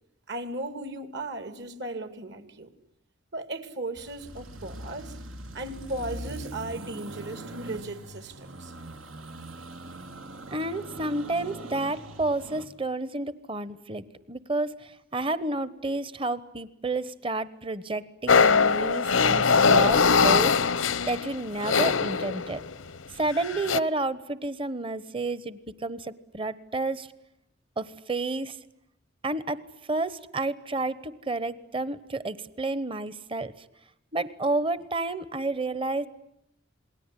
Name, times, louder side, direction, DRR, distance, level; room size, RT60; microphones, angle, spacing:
voice 1, 0.3-2.7 3.3-5.2 5.5-8.7, right 2 dB, 60° right, 2.5 m, -36 dB
sound 1, 4.0-12.7, right 1 dB, 85° right, 2.7 m, -42 dB
voice 2, 10.5-22.6 23.1-27.1 27.8-28.6 29.2-29.6 29.9-33.5 34.1-36.1, right 2 dB, 25° right, 1.1 m, -30 dB
sound 2, 18.3-22.7 23.4-23.8, left 5 dB, 85° left, 1.0 m, -21 dB
28.5 x 20.5 x 9.9 m
head